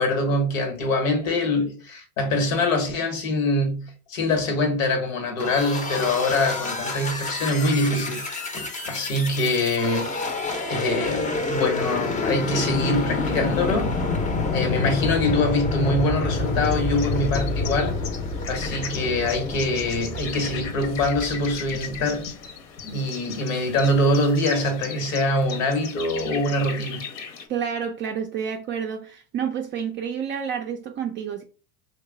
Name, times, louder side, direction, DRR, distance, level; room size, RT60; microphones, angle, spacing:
voice 1, 0.0-10.3 10.7-14.0 14.5-18.0 18.5-22.3 22.8-27.0, left 1 dB, 85° left, 1.2 m, -24 dB
sound 1, 5.4-22.0, left 3 dB, 20° left, 0.6 m, -28 dB
sound 2, 16.3-27.5, left 6 dB, 60° left, 0.9 m, -38 dB
voice 2, 27.5-31.4, right 7 dB, 30° right, 0.4 m, -29 dB
3.0 x 2.3 x 3.6 m
supercardioid pair, 105°, 39 cm